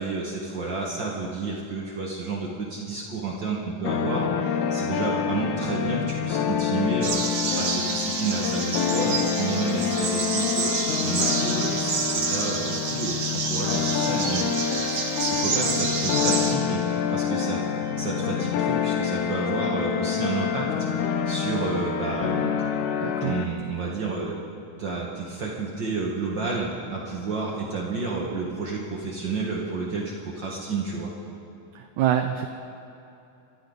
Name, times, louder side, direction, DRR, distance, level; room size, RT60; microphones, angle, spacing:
voice 1, 0.0-7.2 7.5-14.4 15.3-17.6 17.9-22.5 23.2-24.3 24.8-31.1, right 3 dB, 70° right, -3 dB, 1.1 m, -30 dB
sound 1, 3.8-23.4, left 8 dB, 75° left, 1.8 m, -27 dB
sound 2, 7.0-16.5, right 4 dB, 50° right, 1.5 m, -28 dB
voice 2, 23.0-23.4 31.8-32.5, right 10 dB, 85° right, 6 dB, 1.7 m, -25 dB
26.5 x 12.5 x 3.9 m, 2.9 s
omnidirectional pair, 4.1 m